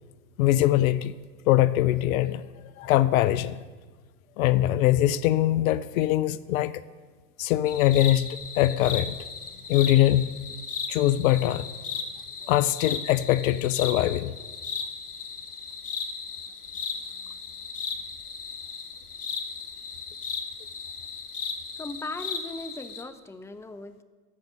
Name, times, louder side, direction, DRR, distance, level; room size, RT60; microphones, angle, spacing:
voice 1, 0.4-1.1 1.5-2.4 2.8-3.6 4.4-6.7 7.4-9.2 9.7-10.3 10.9-11.7 12.5-14.3, left 14 dB, 65° left, 16 dB, 0.6 m, -22 dB
sound 1, 7.7-23.0, left 5 dB, 85° left, 1.3 m, -36 dB
voice 2, 21.8-24.0, left 2 dB, 5° left, 10 dB, 0.7 m, -38 dB
14.0 x 5.2 x 9.4 m, 1.3 s
hypercardioid pair, 80°, 44 cm